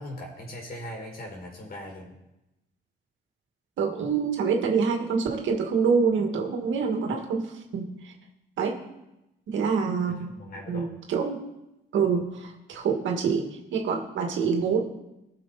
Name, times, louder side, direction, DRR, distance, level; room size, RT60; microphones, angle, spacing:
voice 1, 0.0-2.1 10.1-11.0, left 1 dB, 50° left, 0 dB, 4.7 m, -40 dB
voice 2, 3.8-7.5 7.7-8.1 8.6-8.7 9.5-10.3 10.7-11.4 11.9-13.4 13.7-14.8, right 5 dB, 75° right, 2 dB, 2.2 m, -26 dB
19.5 x 7.0 x 4.3 m, 0.94 s
cardioid pair, 90°, 20 cm